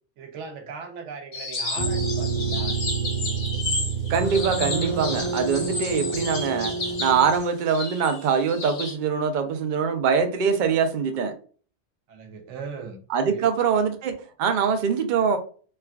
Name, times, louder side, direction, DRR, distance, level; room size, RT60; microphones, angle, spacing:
voice 1, 0.2-2.8 12.1-13.5, right 5 dB, 85° right, 0.9 m, -39 dB
sound 1, 1.3-8.9, left 2 dB, 70° left, 1.3 m, -32 dB
sound 2, 1.8-7.4, right 4 dB, 85° left, 1.4 m, -28 dB
voice 2, 4.1-6.7 7.0-11.4 13.1-15.4, right 6 dB, 55° right, 0.6 m, -23 dB
3.3 x 2.3 x 2.2 m
omnidirectional pair, 1.2 m